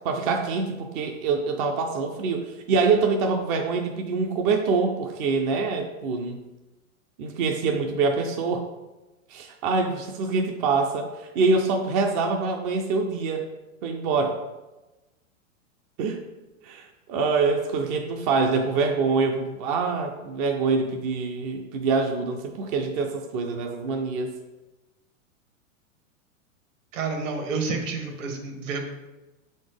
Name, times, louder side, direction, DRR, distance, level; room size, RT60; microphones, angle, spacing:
voice 1, 0.0-6.4 7.2-8.7 9.3-13.4 13.8-14.4 16.0-16.2 16.6-24.3, right 4 dB, 30° right, 3 dB, 0.4 m, -25 dB
voice 2, 26.9-28.8, right 4 dB, 65° right, 4 dB, 1.4 m, -29 dB
6.9 x 4.2 x 3.4 m, 1.1 s
hypercardioid pair, 135°, 41 cm